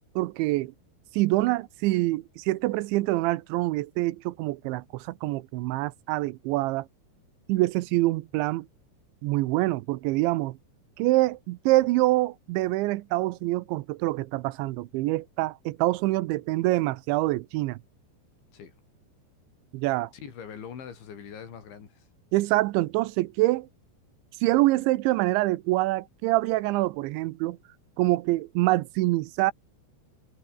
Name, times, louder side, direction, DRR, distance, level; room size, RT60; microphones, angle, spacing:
voice 1, 0.2-0.7 1.1-6.9 7.5-8.7 9.2-10.6 11.0-17.8 19.7-20.1 22.3-23.7 24.4-27.6 28.0-29.5, right 19 dB, 85° right, 3.1 m, -25 dB
voice 2, 20.1-22.1, left 7 dB, 75° left, 6.6 m, -42 dB
omnidirectional pair, 5.3 m